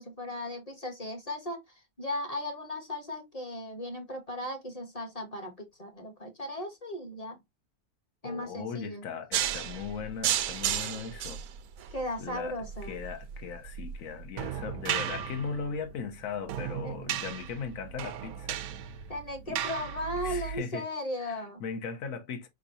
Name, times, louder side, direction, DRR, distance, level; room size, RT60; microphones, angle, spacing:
voice 1, 0.0-7.4 8.2-9.0 11.9-13.0 16.8-16.9 19.1-21.6, left 1 dB, 25° left, 1.2 m, -37 dB
voice 2, 8.2-11.4 12.2-12.6 12.8-18.6 19.5-19.6 20.2-20.8 21.2-22.5, left 6 dB, 70° left, 1.3 m, -38 dB
sound 1, 9.3-20.6, right 10 dB, 85° right, 1.1 m, -35 dB
5.0 x 3.7 x 2.6 m
omnidirectional pair, 1.5 m